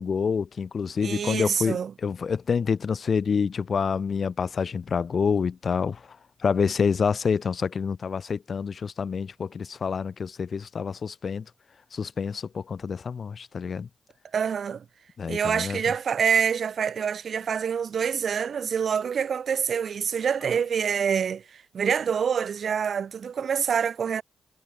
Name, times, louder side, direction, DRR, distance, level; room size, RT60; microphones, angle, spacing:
voice 1, 0.0-6.2 6.4-11.4 11.9-13.9 15.2-15.8, left 6 dB, 60° left, 1.5 m, -27 dB
voice 2, 1.0-1.9 14.3-14.8 15.3-24.2, right 7 dB, 65° right, 0.4 m, -26 dB
supercardioid pair, 45°, 0 cm